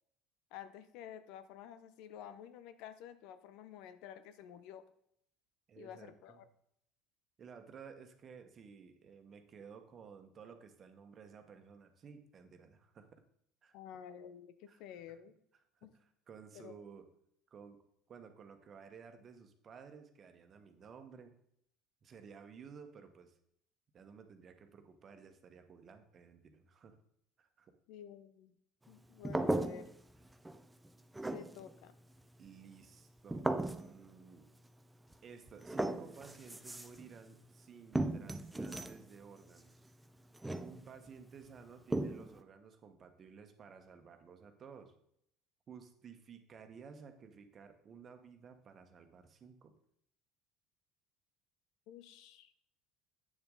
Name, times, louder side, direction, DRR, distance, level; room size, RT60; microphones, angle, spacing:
voice 1, 0.5-4.8 5.8-6.5 13.7-15.4 15.8-15.9 16.5-16.8 27.9-28.5 28.9-29.9 31.3-31.9 51.9-52.5, left 9 dB, 70° left, 13 dB, 0.7 m, -51 dB
voice 2, 5.7-6.4 7.4-13.2 13.6-13.7 14.7-14.8 15.7-15.9 16.3-17.0 17.5-17.8 18.1-21.3 22.0-23.4 23.9-27.0 27.4-27.7 32.4-34.5 35.2-39.7 40.6-44.9 45.7-49.7, right 6 dB, 40° right, 6 dB, 1.3 m, -55 dB
sound 1, 29.2-30.2 30.4-30.9 31.1-31.8 33.3-34.0 35.1-35.2 35.5-37.1 37.9-39.0 40.3-41.1 41.9-42.4, right 2 dB, 10° right, 0.7 m, -36 dB
8.8 x 6.9 x 4.0 m, 0.72 s
hypercardioid pair, 75°, 0 cm